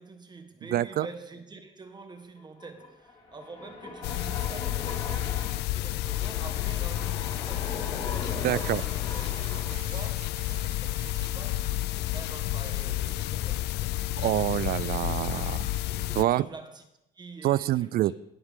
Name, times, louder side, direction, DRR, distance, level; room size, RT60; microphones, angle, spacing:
voice 1, 0.0-14.0 15.9-16.9 17.1-18.1, right 3 dB, 25° right, 1.4 m, -47 dB
voice 2, 0.7-1.1 8.4-8.8 14.2-15.7 16.2-16.4 17.4-18.1, right 14 dB, 60° right, 0.4 m, -26 dB
sound 1, 2.6-9.7, left 3 dB, 35° left, 3.9 m, -40 dB
sound 2, 4.0-16.2, left 15 dB, 75° left, 0.4 m, -31 dB
sound 3, 7.8-13.2, right 12 dB, 80° right, 0.8 m, -49 dB
17.5 x 8.0 x 3.8 m
cardioid pair, 110°, 17 cm